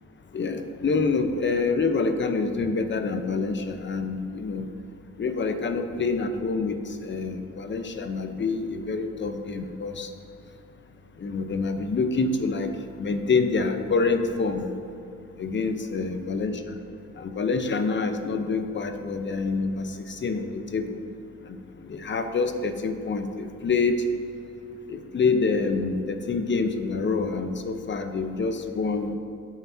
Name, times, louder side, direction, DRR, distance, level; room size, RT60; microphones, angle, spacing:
voice 1, 0.3-4.7 5.2-10.1 11.2-12.7 13.0-14.7 15.4-16.8 17.2-21.0 21.4-21.6 21.9-24.0 24.9-29.1, left 4 dB, 40° left, 7 dB, 0.9 m, -27 dB
16.5 x 5.9 x 2.8 m, 2.7 s
cardioid pair, 90°, 30 cm